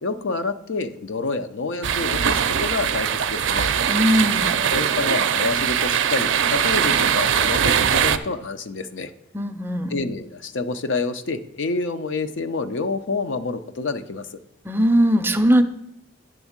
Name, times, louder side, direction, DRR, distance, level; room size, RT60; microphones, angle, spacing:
voice 1, 0.0-3.7 4.7-9.1 9.9-14.3, left 3 dB, 80° left, 9 dB, 0.6 m, -28 dB
sound 1, 1.8-8.2, right 8 dB, 75° right, 0.4 m, -21 dB
voice 2, 3.9-4.6 9.3-10.0 14.7-15.6, equal, 10° right, 8 dB, 0.4 m, -19 dB
10.0 x 3.6 x 7.2 m, 0.78 s
head